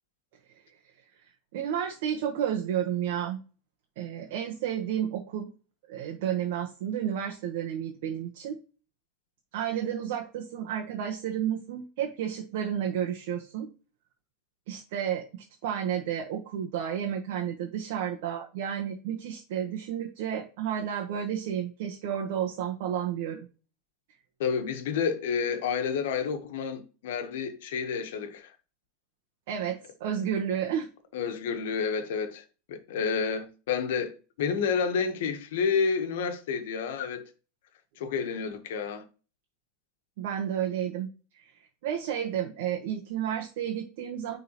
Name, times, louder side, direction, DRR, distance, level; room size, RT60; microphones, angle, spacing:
voice 1, 1.5-3.4 4.0-5.5 5.9-8.6 9.5-13.7 14.7-23.5 29.5-30.9 40.2-41.1 41.3-41.5 41.8-44.4, right 9 dB, 70° right, 1.2 m, -31 dB
voice 2, 24.4-28.5 31.1-32.4 32.7-37.2 38.0-39.0, left 6 dB, 75° left, 1.3 m, -30 dB
9.6 x 3.8 x 3.0 m
supercardioid pair, 130°, 0 cm